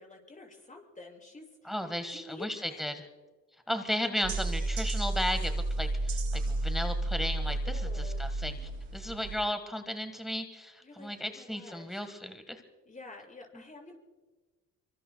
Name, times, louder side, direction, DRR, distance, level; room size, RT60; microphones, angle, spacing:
voice 1, 0.0-1.8 2.1-2.8 7.6-8.2 10.8-12.0 12.9-14.0, left 2 dB, 25° left, 1 dB, 6.3 m, -49 dB
voice 2, 1.6-3.0 3.7-8.6 8.9-12.6, left 1 dB, ahead, 7 dB, 1.5 m, -35 dB
sound 1, 4.2-9.4, right 2 dB, 70° right, 3.1 m, -32 dB
25.5 x 25.0 x 2.3 m, 1.3 s
cardioid pair, 90°, 30 cm